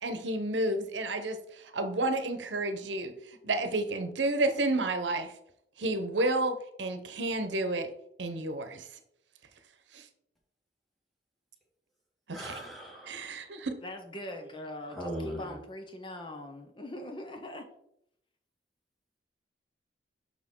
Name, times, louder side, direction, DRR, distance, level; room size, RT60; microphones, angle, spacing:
voice 1, 0.0-5.3 5.8-7.9 8.2-8.9 9.9-10.0 12.3-12.6 13.1-13.7, right 2 dB, 85° right, 8 dB, 0.8 m, -31 dB
voice 2, 12.3-13.3 14.9-15.5, equal, ahead, -3 dB, 2.0 m, -39 dB
voice 3, 13.8-17.7, left 1 dB, 25° left, 4 dB, 0.7 m, -42 dB
6.2 x 6.0 x 3.7 m, 0.74 s
head